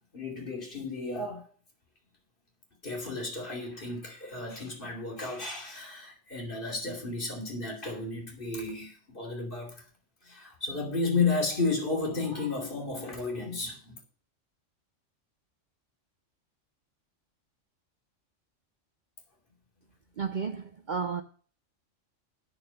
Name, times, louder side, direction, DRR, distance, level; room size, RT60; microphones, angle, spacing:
voice 1, 0.1-1.5 2.8-9.8 10.2-14.0, left 3 dB, 45° left, 2.9 m, -33 dB
voice 2, 20.2-21.2, right 6 dB, 50° right, 0.6 m, -32 dB
8.8 x 6.6 x 6.8 m
omnidirectional pair, 1.3 m